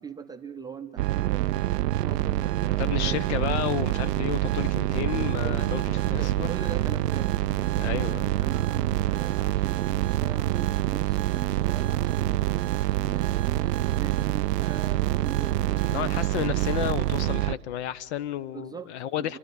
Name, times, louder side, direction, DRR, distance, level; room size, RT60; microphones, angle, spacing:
voice 1, 0.0-1.7 2.0-3.2 5.2-12.5 12.9-16.2 18.5-19.4, right 6 dB, 10° right, 6 dB, 0.6 m, -42 dB
sound 1, 1.0-17.5, right 14 dB, 75° right, 0.5 m, -26 dB
voice 2, 2.8-5.8 6.1-6.5 7.8-8.3 15.8-19.4, left 11 dB, 45° left, 16 dB, 0.5 m, -31 dB
28.0 x 12.5 x 9.4 m, 2.3 s
hypercardioid pair, 100°, 49 cm